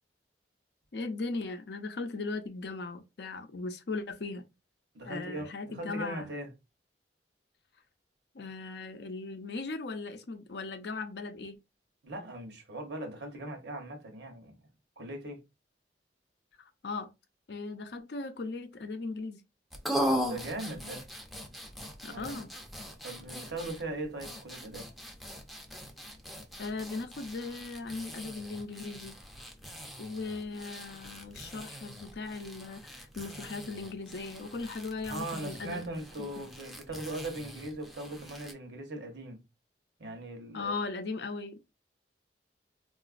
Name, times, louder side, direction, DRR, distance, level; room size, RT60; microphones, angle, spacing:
voice 1, 0.9-4.5 5.0-6.3 8.3-11.6 16.6-17.1 17.5-19.4 22.0-22.5 26.6-29.2 30.0-35.8 36.2-36.3 40.5-41.6, left 3 dB, 70° left, 0.5 m, -38 dB
voice 2, 4.9-6.5 12.0-14.6 15.0-15.4 20.1-21.0 22.1-22.3 23.0-24.9 35.1-39.4 40.0-40.7, right 1 dB, 75° right, 0.9 m, -39 dB
sound 1, 19.7-38.5, equal, ahead, 0.5 m, -40 dB
3.8 x 2.4 x 2.4 m
head